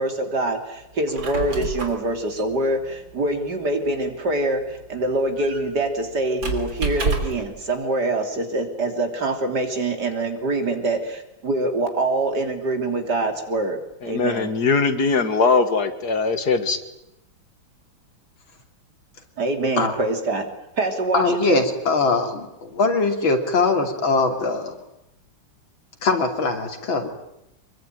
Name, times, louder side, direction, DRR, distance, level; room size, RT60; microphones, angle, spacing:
voice 1, 0.0-13.8 14.1-14.5 19.4-20.5 20.8-21.6, right 2 dB, 55° right, 5 dB, 3.7 m, -25 dB
Squeak, 0.9-7.6, right 3 dB, 75° right, 4.0 m, -31 dB
voice 2, 14.0-16.8, left 4 dB, 55° left, 10 dB, 2.2 m, -21 dB
voice 3, 21.1-24.8 26.0-27.1, left 3 dB, 80° left, 4 dB, 3.7 m, -21 dB
25.0 x 22.5 x 9.2 m, 0.87 s
omnidirectional pair, 2.1 m